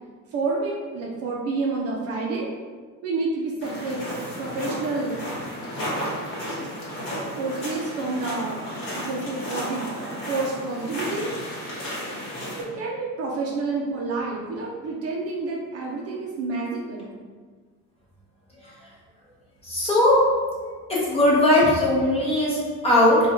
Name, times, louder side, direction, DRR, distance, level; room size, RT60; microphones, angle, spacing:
voice 1, 0.3-2.5 3.0-4.0 4.4-5.2 7.3-8.7 8.9-9.9 10.3-11.3 12.6-17.1, right 3 dB, 40° right, -3 dB, 0.5 m, -29 dB
sound 1, 3.6-12.6, equal, 30° left, 1.2 m, -33 dB
voice 2, 19.6-20.2 20.9-23.2, left 1 dB, 15° left, -6 dB, 0.8 m, -19 dB
3.6 x 2.3 x 4.3 m, 1.5 s
cardioid pair, 165°, 38 cm